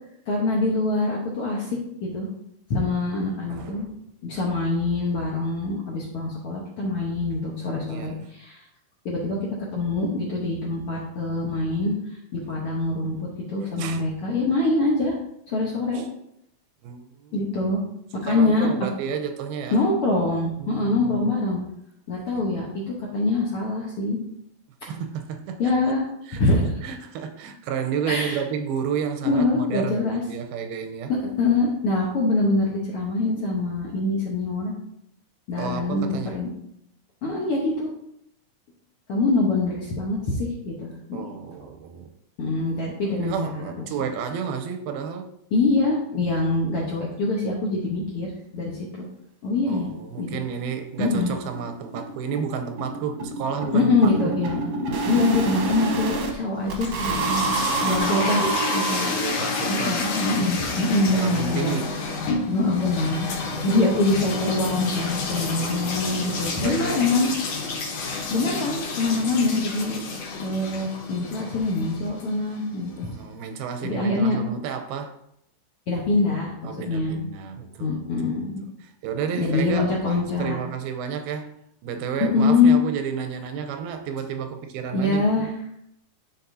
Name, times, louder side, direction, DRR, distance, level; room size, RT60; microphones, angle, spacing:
voice 1, 0.3-1.7 2.0-2.3 2.7-3.9 4.2-8.6 9.0-11.9 12.3-15.2 15.5-16.1 17.3-17.8 18.1-18.7 19.7-21.6 22.1-24.2 25.6-26.0 26.4-26.7 28.1-28.4 29.2-30.2 31.4-34.7 35.5-36.5 37.2-37.9 39.1-41.2 42.4-43.8 45.5-49.0 49.4-49.9 50.2-50.4 51.0-51.4 53.7-54.6 55.1-61.8 62.5-63.3 63.6-67.5 68.3-69.9 70.4-73.1 73.8-74.4 75.9-77.2 77.8-78.6 79.4-80.6 82.3-82.7 84.9-85.5, left 3 dB, 85° left, -4 dB, 1.2 m, -24 dB
voice 2, 3.5-3.9 7.9-8.2 13.8-14.0 15.9-16.1 16.8-17.5 18.2-19.8 20.6-21.3 22.3-22.5 24.9-26.0 26.3-31.1 35.6-36.4 41.1-42.1 43.1-45.3 49.7-54.3 57.3-58.2 58.9-60.1 61.1-62.0 63.4-63.7 65.4-65.9 66.6-67.0 72.8-75.2 76.6-78.4 78.8-81.6 81.8-85.5, right 7 dB, 90° right, 7 dB, 2.5 m, -32 dB
sound 1, 49.5-49.6 49.9-50.0 50.3-50.4 50.7-50.8 51.1-56.3 56.7-59.5, right 3 dB, 65° right, 1.7 m, -28 dB
sound 2, 56.6-72.7, left 4 dB, 65° left, 1.8 m, -30 dB
11.5 x 4.2 x 2.7 m, 0.76 s
omnidirectional pair, 4.2 m